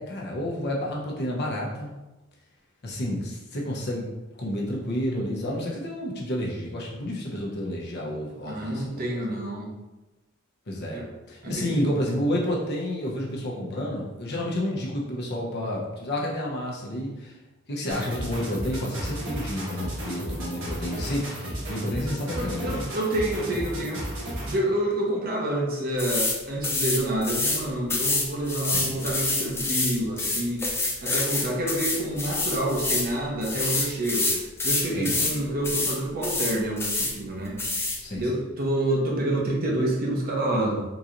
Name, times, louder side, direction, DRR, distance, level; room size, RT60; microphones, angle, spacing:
voice 1, 0.0-1.9 2.8-4.1 4.4-9.2 10.7-17.4 17.7-22.9 28.7-29.1 34.9-35.3 38.0-38.4, left 1 dB, 55° left, -3 dB, 0.8 m, -30 dB
voice 2, 8.4-9.7 10.9-11.0 11.4-12.0 21.9-24.0 24.5-30.6 31.0-34.3 34.6-37.6 38.1-40.8, right 1 dB, 45° right, -2 dB, 0.8 m, -28 dB
sound 1, 17.9-24.7, right 1 dB, 65° right, 1.4 m, -34 dB
sound 2, 26.0-26.4 26.6-27.6 27.9-33.1 33.4-35.4 35.6-36.0 36.2-37.1 37.6-38.0, left 2 dB, 10° left, 0.5 m, -27 dB
3.9 x 3.0 x 2.5 m, 1.1 s
head